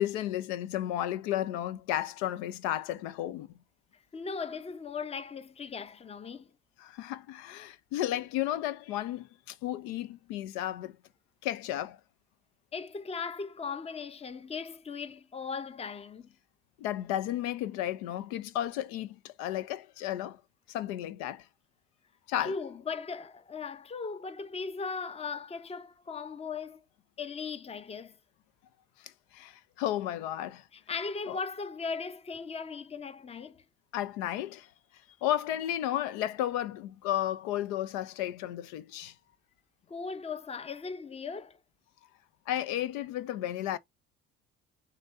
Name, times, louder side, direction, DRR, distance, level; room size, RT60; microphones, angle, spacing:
voice 1, 0.0-3.6 6.8-11.0 11.4-12.0 16.8-20.4 20.7-21.5 22.3-22.6 29.0-30.7 31.3-31.4 33.9-34.7 35.2-39.1 42.5-43.8, left 12 dB, 75° left, 0.5 m, -33 dB
voice 2, 4.1-6.5 12.7-16.3 22.4-26.8 27.2-28.2 30.7-33.6 39.9-41.6, left 5 dB, 20° left, 0.6 m, -38 dB
7.4 x 2.7 x 2.5 m
hypercardioid pair, 65°, 34 cm